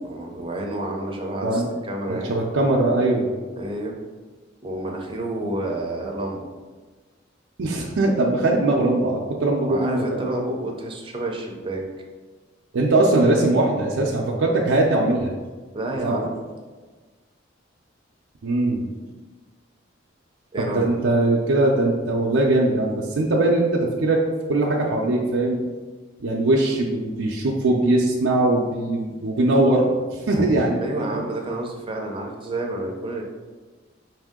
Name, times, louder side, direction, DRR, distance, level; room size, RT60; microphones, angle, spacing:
voice 1, 0.0-2.3 3.6-4.0 4.6-6.5 8.5-8.7 9.7-11.8 15.7-16.4 20.5-20.9 30.8-33.2, right 1 dB, 25° right, 0 dB, 0.6 m, -30 dB
voice 2, 2.1-3.3 7.6-10.3 12.7-15.3 16.0-16.3 18.4-18.9 20.6-24.2 24.5-25.6 26.2-30.8 31.1-31.2, right 2 dB, 80° right, -2 dB, 0.5 m, -21 dB
5.5 x 2.7 x 3.6 m, 1.4 s
head